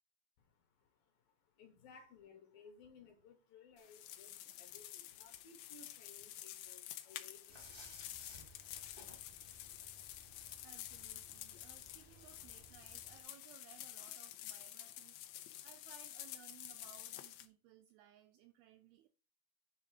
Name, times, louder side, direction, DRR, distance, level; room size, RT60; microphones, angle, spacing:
voice 1, 0.4-8.6, left 5 dB, 70° left, 2.4 m, -61 dB
sound 1, 3.8-17.5, left 13 dB, 85° left, 2.0 m, -50 dB
sound 2, 7.5-13.2, left 1 dB, 35° left, 0.8 m, -59 dB
voice 2, 10.6-19.1, right 11 dB, 85° right, 2.2 m, -62 dB
9.9 x 3.5 x 4.9 m
omnidirectional pair, 4.9 m